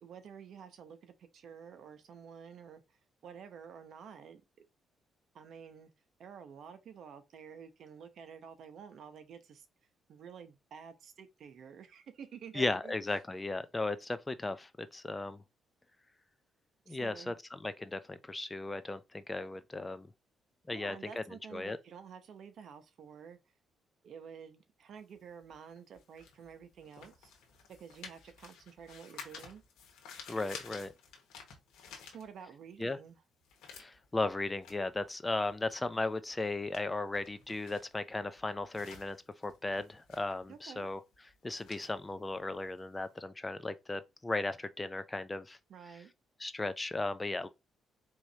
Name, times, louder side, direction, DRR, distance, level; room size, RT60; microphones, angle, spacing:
voice 1, 0.0-2.8 3.2-4.4 5.3-5.9 6.2-9.7 10.1-12.9 16.9-17.3 20.7-23.4 24.0-27.3 27.7-29.6 32.0-33.2 40.5-40.9 45.7-46.1, right 7 dB, 65° right, 0.8 m, -50 dB
voice 2, 12.5-15.4 16.9-20.1 20.7-21.2 21.5-21.8 30.3-30.9 32.8-33.0 33.7-39.2 39.4-41.0 41.4-45.6 46.4-47.5, left 2 dB, 20° left, 0.5 m, -36 dB
sound 1, 25.0-32.7 33.1-43.1, left 6 dB, 90° left, 1.3 m, -53 dB
4.6 x 3.1 x 2.7 m
cardioid pair, 90°, 0 cm